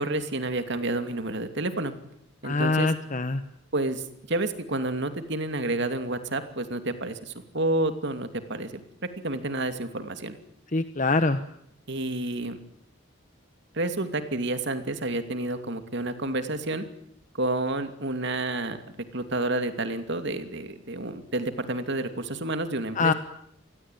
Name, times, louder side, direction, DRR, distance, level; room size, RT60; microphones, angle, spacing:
voice 1, 0.0-1.9 2.4-2.9 3.7-8.8 9.2-10.4 11.9-12.6 13.7-16.8 17.3-18.8 19.1-23.1, right 2 dB, 55° right, 9 dB, 2.7 m, -29 dB
voice 2, 2.4-3.4 10.7-11.4 23.0-23.1, left 3 dB, 40° left, 10 dB, 1.2 m, -24 dB
28.5 x 20.5 x 9.4 m, 0.71 s
head